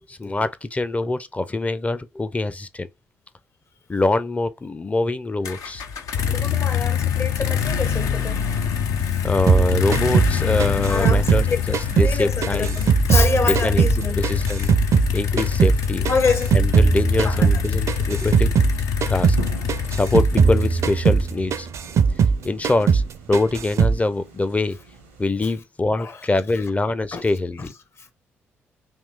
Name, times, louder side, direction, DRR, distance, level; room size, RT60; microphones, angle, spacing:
voice 1, 0.0-2.9 3.9-5.8 9.2-12.8 13.4-13.9 14.2-14.7 15.1-16.1 16.5-18.5 19.1-19.4 19.9-21.7 22.4-23.0 23.3-24.8 25.2-27.7, left 2 dB, 20° left, 0.6 m, -24 dB
sound 1, 5.4-21.4, left 7 dB, 65° left, 0.5 m, -25 dB
voice 2, 6.2-8.6 10.9-11.6 12.0-14.2 16.0-16.5 17.2-17.6 26.0-26.1 27.1-27.2, left 4 dB, 40° left, 0.9 m, -26 dB
sound 2, 9.5-12.2 12.4-15.1 15.4-18.8 19.0-19.4 19.7-22.4 22.6-23.1 23.3-24.0, right 6 dB, 50° right, 0.5 m, -19 dB
sound 3, 19.4-25.2, right 3 dB, 90° right, 0.8 m, -42 dB
3.6 x 2.8 x 4.0 m
figure-of-eight pair, 40°, 6 cm